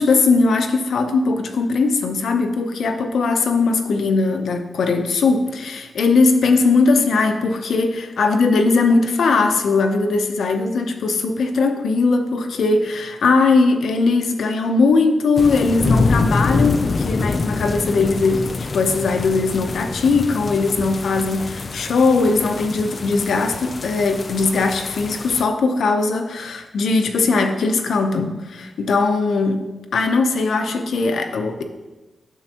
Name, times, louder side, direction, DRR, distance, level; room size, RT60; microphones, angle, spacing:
voice 1, 0.0-29.6 29.9-31.6, left 3 dB, 85° left, 6 dB, 0.7 m, -19 dB
sound 1, 15.4-25.5, left 3 dB, 45° left, 0.4 m, -25 dB
9.3 x 7.0 x 2.9 m, 1.1 s
cardioid pair, 75°, 0 cm